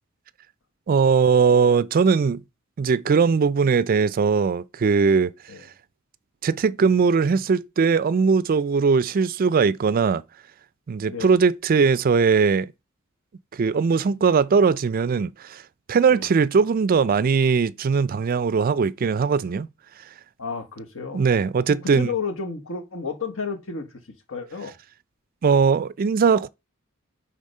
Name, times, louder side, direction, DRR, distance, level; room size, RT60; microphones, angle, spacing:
voice 1, 0.9-2.4 2.8-5.3 6.4-10.2 10.9-12.7 13.5-15.6 15.9-19.7 21.1-22.1 25.4-26.5, right 5 dB, 45° right, 0.4 m, -20 dB
voice 2, 20.4-21.3 21.7-24.7, left 5 dB, 70° left, 1.4 m, -32 dB
8.4 x 3.5 x 5.5 m
head